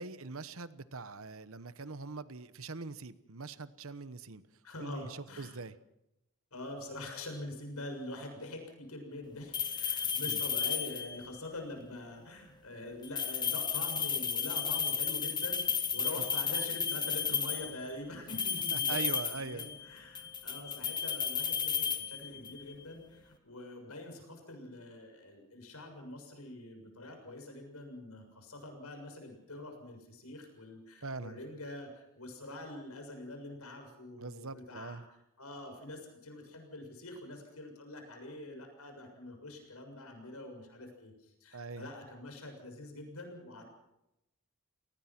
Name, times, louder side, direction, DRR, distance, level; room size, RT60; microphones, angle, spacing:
voice 1, 0.0-4.4 4.8-5.7 10.3-10.4 18.7-19.7 31.0-31.4 34.2-35.0 41.5-41.9, right 4 dB, 70° right, 14 dB, 1.1 m, -42 dB
voice 2, 4.6-5.6 6.5-15.6 15.9-19.0 19.3-43.7, left 1 dB, 80° left, 5 dB, 6.8 m, -45 dB
sound 1, 9.5-11.3 13.0-17.8 18.3-19.9 20.2-22.6, left 7 dB, 20° left, 1.4 m, -33 dB
28.0 x 19.5 x 6.0 m, 0.90 s
head